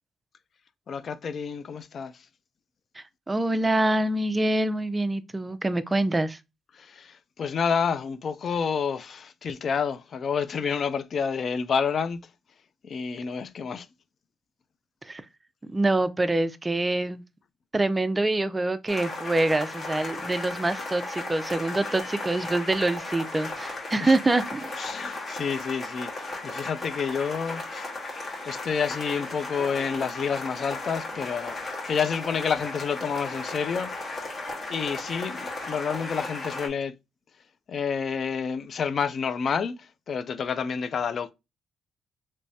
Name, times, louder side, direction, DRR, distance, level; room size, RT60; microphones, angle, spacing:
voice 1, 0.9-2.2 6.7-12.2 12.8-13.9 24.0-24.2 24.8-27.9 28.2-34.3 34.7-36.9 37.7-41.3, left 6 dB, 50° left, 0.4 m, -29 dB
voice 2, 3.0-6.4 15.0-15.2 15.7-17.2 17.7-24.7, right 2 dB, 20° right, 0.4 m, -25 dB
sound 1, 18.9-36.7, left 2 dB, 35° left, 1.6 m, -35 dB
3.3 x 3.1 x 2.6 m
cardioid pair, 90°, 0 cm